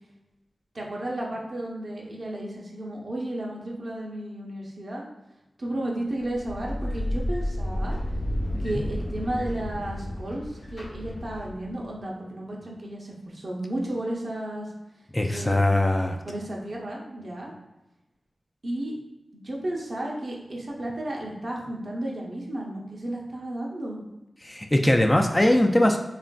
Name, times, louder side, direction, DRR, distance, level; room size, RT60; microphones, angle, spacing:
voice 1, 0.7-5.1 5.6-8.0 8.6-14.7 15.3-15.6 16.2-17.5 18.6-18.9 19.4-24.0, right 1 dB, 60° right, -2 dB, 0.7 m, -33 dB
sound 1, 6.2-11.8, left 1 dB, 60° left, 0.8 m, -31 dB
voice 2, 15.1-16.2 24.4-26.0, left 1 dB, 20° left, 3 dB, 0.3 m, -21 dB
3.1 x 2.4 x 2.2 m, 0.98 s
cardioid pair, 45°, 0 cm